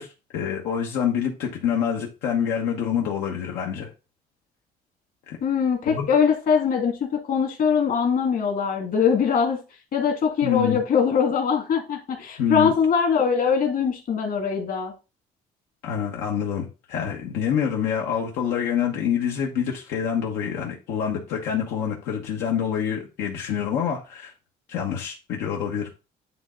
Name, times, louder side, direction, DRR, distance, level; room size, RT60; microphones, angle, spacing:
voice 1, 0.0-3.9 5.3-5.4 5.9-6.1 10.4-10.8 12.4-12.7 15.8-24.3 24.7-25.9, left 8 dB, 90° left, -1 dB, 1.2 m, -26 dB
voice 2, 5.4-9.6 9.9-14.9, left 6 dB, 60° left, 3 dB, 2.0 m, -22 dB
9.3 x 3.2 x 3.8 m, 0.30 s
cardioid pair, 110°, 17 cm